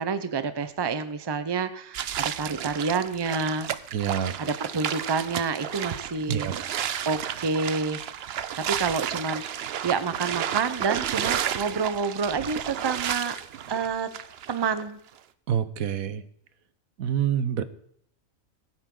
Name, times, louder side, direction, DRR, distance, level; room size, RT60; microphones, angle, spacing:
voice 1, 0.0-3.7 4.4-6.5 7.0-8.0 8.6-9.4 9.8-13.4 13.7-14.1 14.5-15.0, right 5 dB, 25° right, 11 dB, 0.6 m, -28 dB
sound 1, 1.9-14.8, right 9 dB, 60° right, 0.7 m, -32 dB
voice 2, 3.9-4.3 6.3-6.5 15.5-16.2 17.0-17.6, right 9 dB, 90° right, 13 dB, 1.3 m, -26 dB
22.0 x 8.9 x 3.8 m, 0.66 s
omnidirectional pair, 1.4 m